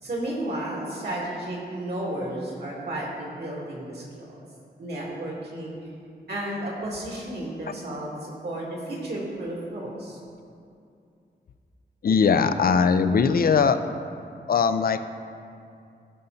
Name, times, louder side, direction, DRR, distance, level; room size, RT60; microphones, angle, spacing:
voice 1, 0.0-4.4 4.8-5.8 6.3-10.2, right 1 dB, 65° right, -4 dB, 2.4 m, -33 dB
voice 2, 12.0-13.8 14.5-15.0, left 6 dB, 55° left, 10 dB, 0.4 m, -20 dB
14.5 x 5.5 x 4.1 m, 2.5 s
wide cardioid pair, 135°, 18 cm